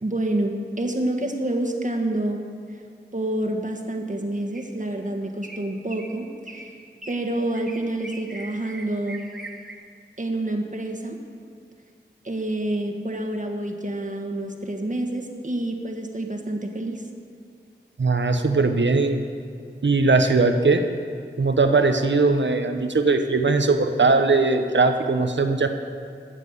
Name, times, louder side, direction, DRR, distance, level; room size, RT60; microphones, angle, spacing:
voice 1, 0.0-2.4 2.7-2.8 3.1-6.7 7.1-9.2 10.2-11.2 12.2-17.0, right 1 dB, 45° right, 3 dB, 1.5 m, -28 dB
sound 1, 4.5-4.9 5.4-5.6 5.9-6.1 6.5-6.7 7.0-7.2 7.5-9.7, right 2 dB, ahead, 1.6 m, -40 dB
voice 2, 18.0-19.2 19.8-20.8 21.4-25.8, right 3 dB, 85° right, 7 dB, 0.9 m, -20 dB
13.5 x 7.3 x 8.3 m, 2.2 s
wide cardioid pair, 55°, 19 cm